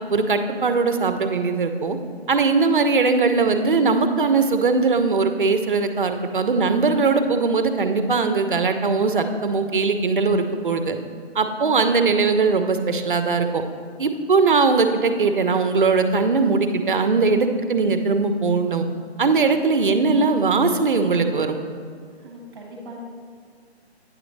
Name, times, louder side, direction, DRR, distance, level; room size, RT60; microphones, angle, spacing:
voice 1, 0.1-2.0 2.3-11.0 11.3-13.6 14.0-18.9 19.2-21.6, right 4 dB, 50° right, 7 dB, 0.6 m, -20 dB
voice 2, 22.2-23.0, right 1 dB, 25° right, -2 dB, 1.4 m, -41 dB
8.7 x 6.0 x 3.2 m, 2.1 s
hypercardioid pair, 175°, 33 cm